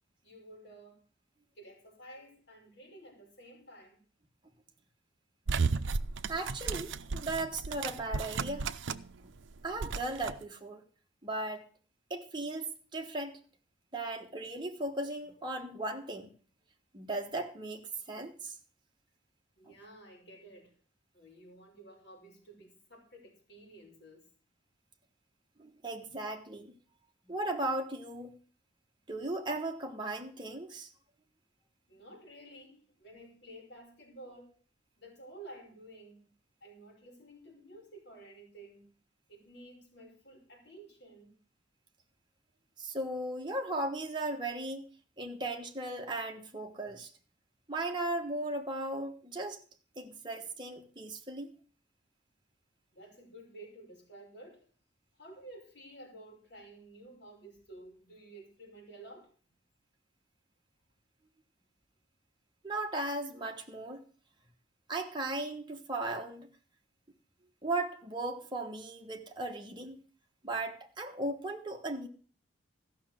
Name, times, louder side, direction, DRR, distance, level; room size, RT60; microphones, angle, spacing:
voice 1, 0.2-1.0 1.5-4.0 19.6-20.7 21.1-24.3 31.9-34.6 35.0-36.3 36.6-38.9 39.3-41.4 52.9-54.7 55.1-59.3, right 1 dB, 60° left, 4.7 m, -52 dB
sound 1, 5.5-9.2 9.4-10.3, right 4 dB, 80° right, 0.6 m, -34 dB
voice 2, 6.3-8.7 9.2-9.3 9.6-10.8 11.2-11.7 12.1-13.4 13.9-16.3 16.9-18.6 19.7-19.8 25.6-26.7 27.3-28.4 29.1-30.9 42.8-44.9 45.2-47.1 47.7-49.6 50.0-51.5 62.6-64.0 64.9-66.5 67.6-70.0 70.4-72.1, right 2 dB, 25° right, 1.3 m, -37 dB
14.0 x 6.1 x 7.6 m
head